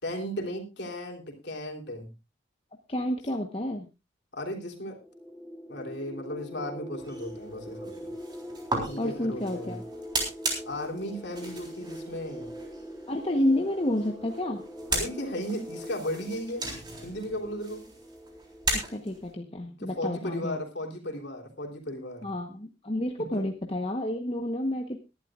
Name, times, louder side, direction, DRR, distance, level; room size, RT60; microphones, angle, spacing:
voice 1, 0.0-2.1 4.3-5.0 5.7-8.1 8.8-9.8 10.6-12.5 14.9-16.7 17.0-17.9 19.8-22.3 23.2-23.4, left 1 dB, 60° left, 2 dB, 3.2 m, -35 dB
voice 2, 2.9-3.9 9.0-9.8 13.1-14.6 18.9-20.6 22.2-25.0, left 1 dB, 30° left, 3 dB, 1.0 m, -30 dB
sound 1, 4.9-19.3, equal, ahead, 0.9 m, -43 dB
sound 2, 7.0-19.3, right 2 dB, 20° right, 3.7 m, -37 dB
22.0 x 11.5 x 2.4 m, 0.26 s
head